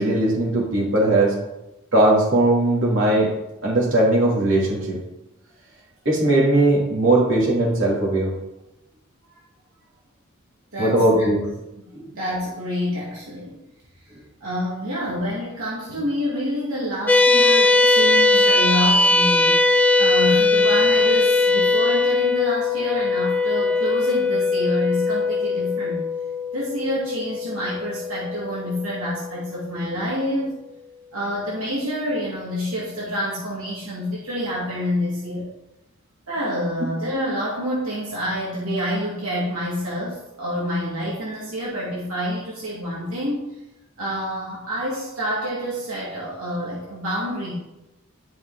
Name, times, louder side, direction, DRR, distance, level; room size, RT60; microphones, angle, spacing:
voice 1, 0.0-1.3 1.9-3.3 3.6-5.0 6.1-8.3 10.8-11.4 11.9-12.1, right 1 dB, 60° right, -5 dB, 3.4 m, -19 dB
voice 2, 10.7-11.3 12.2-13.6 14.4-19.6 20.0-26.1 26.5-30.6 31.1-35.5 36.3-43.5 44.0-47.5, equal, 80° right, -7 dB, 2.5 m, -27 dB
sound 1, 17.1-29.7, left 3 dB, 10° left, 0.5 m, -20 dB
12.0 x 5.5 x 4.2 m, 0.94 s
head